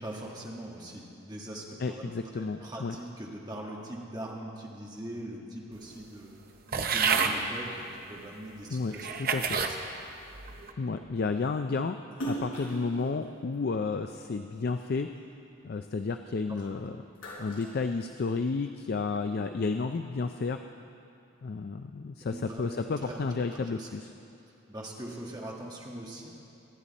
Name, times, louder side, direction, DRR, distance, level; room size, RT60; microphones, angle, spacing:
voice 1, 0.0-6.3 6.7-9.1 9.6-9.9 22.3-23.2 23.5-23.9 24.7-26.3, right 1 dB, 20° right, -2 dB, 1.6 m, -41 dB
voice 2, 1.8-3.0 8.7-9.4 10.8-12.0 12.3-15.1 15.6-17.0 17.4-20.6 21.4-24.1, left 4 dB, 45° left, 7 dB, 0.4 m, -32 dB
sound 1, 6.7-7.4 8.2-8.3 8.9-9.8 10.3-10.7, right 6 dB, 45° right, 0.8 m, -28 dB
Splash splatter, 12.1-14.7 15.1-16.6 16.9-18.6, right 1 dB, 75° left, 4.2 m, -40 dB
24.0 x 10.0 x 4.2 m, 2.8 s
head